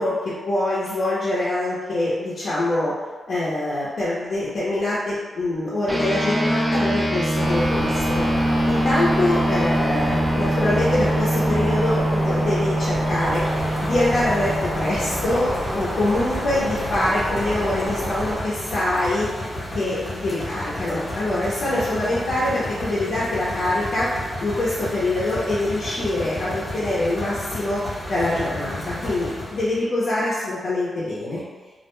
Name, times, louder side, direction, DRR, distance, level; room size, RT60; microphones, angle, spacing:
voice 1, 0.0-2.9 3.3-8.2 8.7-13.4 13.8-19.3 19.7-24.1 24.4-27.8 28.1-31.4, left 1 dB, 65° left, -10 dB, 0.6 m, -24 dB
sound 1, 5.9-15.6, right 1 dB, 10° right, 0.5 m, -24 dB
sound 2, 7.3-18.3, equal, 70° right, 1.1 m, -29 dB
sound 3, 12.9-29.8, left 1 dB, 25° left, 0.7 m, -32 dB
2.4 x 2.1 x 3.0 m, 1.3 s
wide cardioid pair, 140°, 0 cm